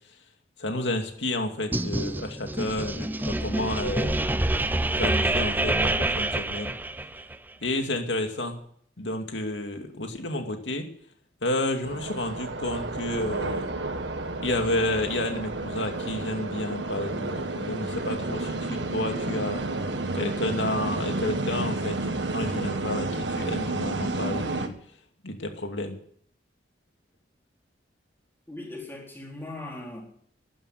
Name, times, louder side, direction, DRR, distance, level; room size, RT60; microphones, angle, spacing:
voice 1, 0.6-4.2 5.0-6.8 7.6-8.6 9.0-10.9 11.4-13.7 14.4-19.6 20.1-22.0 22.3-24.7 25.2-26.0, left 1 dB, 90° left, 4 dB, 2.4 m, -30 dB
sound 1, 1.7-7.4, right 1 dB, 10° right, 0.6 m, -27 dB
sound 2, 11.8-24.7, right 2 dB, 85° right, 1.6 m, -31 dB
voice 2, 28.5-30.0, left 2 dB, 10° left, -1 dB, 4.3 m, -39 dB
13.0 x 11.0 x 9.2 m, 0.64 s
head